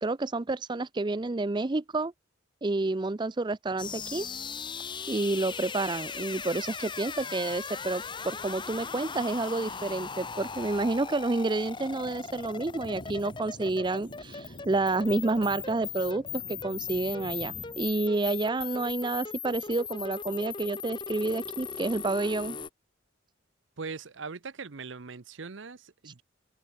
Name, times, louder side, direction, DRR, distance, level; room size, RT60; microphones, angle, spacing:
voice 1, 0.0-2.1 2.6-4.3 5.1-22.6, right 2 dB, 25° right, 0.5 m, -29 dB
sound 1, 3.8-22.7, left 6 dB, 25° left, 0.9 m, -39 dB
Thunder, 11.6-18.0, equal, 40° left, 4.5 m, -48 dB
voice 2, 23.8-26.2, right 4 dB, 70° right, 0.8 m, -40 dB
open air
head